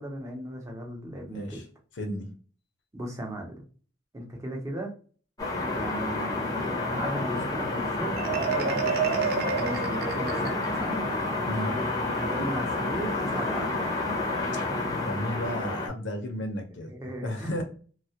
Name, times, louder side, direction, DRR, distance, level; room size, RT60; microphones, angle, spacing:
voice 1, 0.0-1.6 2.9-3.6 4.1-4.9 5.7-9.1 9.4-11.0 12.1-13.7 16.9-17.6, right 1 dB, 15° right, 0.7 m, -37 dB
voice 2, 1.3-1.6 2.0-2.3 11.5-11.8 14.9-16.9 17.2-17.6, left 1 dB, 80° left, 0.6 m, -33 dB
sound 1, 5.4-15.9, left 2 dB, 20° left, 0.6 m, -29 dB
Marimba xylophone, 8.2-10.9, right 7 dB, 55° right, 0.3 m, -30 dB
2.2 x 2.0 x 2.7 m
head